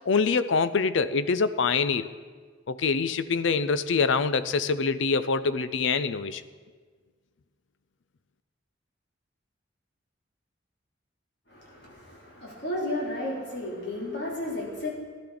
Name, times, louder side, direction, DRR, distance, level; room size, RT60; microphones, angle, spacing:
voice 1, 0.1-2.1 2.7-6.4, left 4 dB, 75° left, 14 dB, 0.5 m, -25 dB
voice 2, 11.5-14.9, left 1 dB, 60° left, -3 dB, 3.1 m, -33 dB
15.5 x 11.5 x 3.9 m, 1.5 s
head